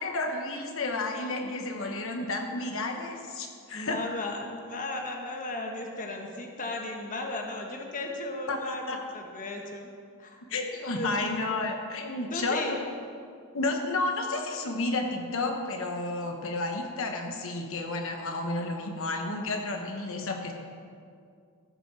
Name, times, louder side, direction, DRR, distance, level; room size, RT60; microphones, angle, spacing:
voice 1, 0.0-4.0 8.5-9.0 10.5-12.8 13.5-20.5, left 2 dB, 60° left, 3 dB, 1.1 m, -31 dB
voice 2, 3.7-8.8 9.1-9.9 10.2-10.4 10.9-11.4 12.3-12.7, left 2 dB, 35° left, 2 dB, 1.2 m, -35 dB
15.0 x 6.2 x 6.8 m, 2.3 s
head